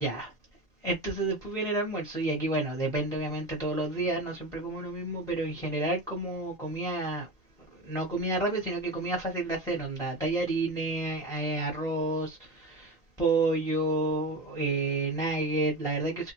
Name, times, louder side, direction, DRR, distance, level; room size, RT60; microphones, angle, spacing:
voice 1, 0.0-0.3 0.8-7.3 7.8-12.9 13.2-16.3, right 2 dB, 5° left, 0.9 m, -30 dB
2.6 x 2.1 x 3.0 m
omnidirectional pair, 1.3 m